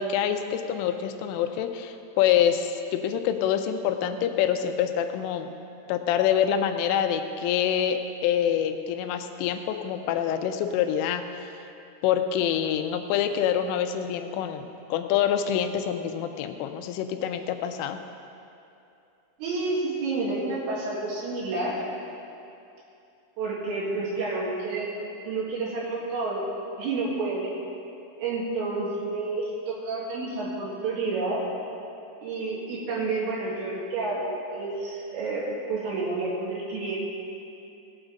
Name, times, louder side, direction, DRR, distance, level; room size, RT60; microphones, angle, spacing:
voice 1, 0.0-5.5 5.9-11.3 12.0-18.0, left 9 dB, 85° left, 7 dB, 3.1 m, -26 dB
voice 2, 19.4-21.8 23.4-24.9 25.2-26.5 26.8-27.5 28.2-31.5 32.2-36.9, right 3 dB, 80° right, -6 dB, 4.2 m, -29 dB
17.0 x 8.9 x 3.8 m, 2.7 s
omnidirectional pair, 5.8 m